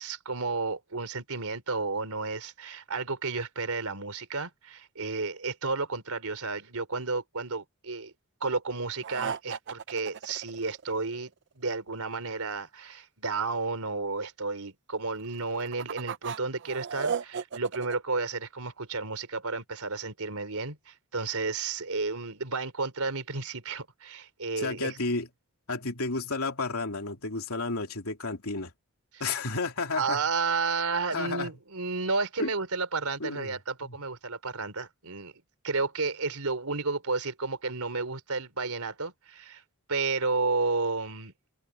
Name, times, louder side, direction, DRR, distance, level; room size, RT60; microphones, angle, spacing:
voice 1, 0.0-8.1 8.4-11.3 11.6-24.9 29.9-35.3 35.6-39.6 39.9-41.3, right 4 dB, 75° right, 4.0 m, -32 dB
sound 1, 9.0-11.2 15.3-18.0, right 6 dB, 55° right, 0.6 m, -35 dB
voice 2, 24.6-25.3 25.7-28.7 29.2-30.2 31.1-31.5 32.4-32.5 33.2-34.0, left 3 dB, 70° left, 3.3 m, -32 dB
head